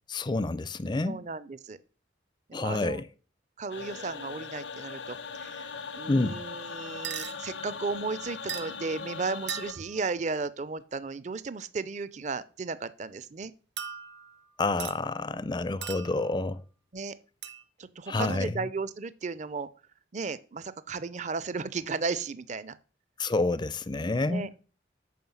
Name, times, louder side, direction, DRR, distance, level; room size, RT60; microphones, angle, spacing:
voice 1, 0.1-1.2 2.5-3.1 6.1-6.4 14.6-16.6 18.1-18.5 23.2-24.5, left 2 dB, 25° left, 0.4 m, -28 dB
voice 2, 1.0-1.8 2.5-3.0 3.6-13.5 16.9-17.2 17.8-19.7 20.1-22.8 24.3-24.5, right 4 dB, 40° right, 0.5 m, -35 dB
sound 1, 3.7-9.7, left 5 dB, 80° left, 1.0 m, -40 dB
sound 2, 7.0-7.3 8.5-8.8 9.5-10.0 13.8-14.4 14.8-15.0 15.8-16.3 17.4-17.6, right 8 dB, 65° right, 1.2 m, -38 dB
9.4 x 5.5 x 7.1 m
head